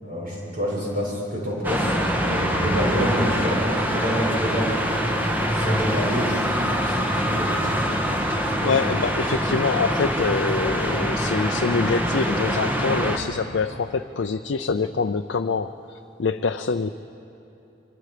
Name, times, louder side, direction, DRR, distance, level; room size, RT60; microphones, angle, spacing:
voice 1, 0.0-3.6 3.8-5.1 5.5-8.0, equal, 50° right, -4 dB, 6.8 m, -28 dB
sound 1, 1.6-13.2, equal, 10° right, 1.4 m, -24 dB
voice 2, 8.6-16.9, left 4 dB, 65° left, 7 dB, 0.5 m, -25 dB
25.0 x 25.0 x 5.1 m, 3.0 s
head